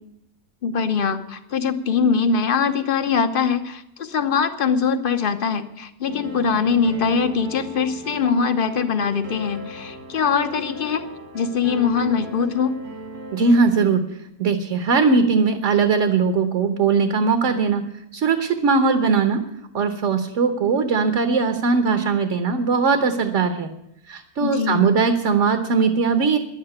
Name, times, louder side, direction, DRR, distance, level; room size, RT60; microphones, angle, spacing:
voice 1, 0.6-11.1 11.3-12.7 24.4-24.9, left 6 dB, 40° left, 8 dB, 1.0 m, -22 dB
sound 1, 6.1-13.7, right 1 dB, 80° right, 3.2 m, -37 dB
voice 2, 13.3-14.0 14.4-17.8 18.1-19.4 19.7-23.7 24.1-26.4, right 5 dB, 55° right, 7 dB, 1.3 m, -19 dB
11.5 x 8.9 x 9.7 m, 0.82 s
omnidirectional pair, 1.6 m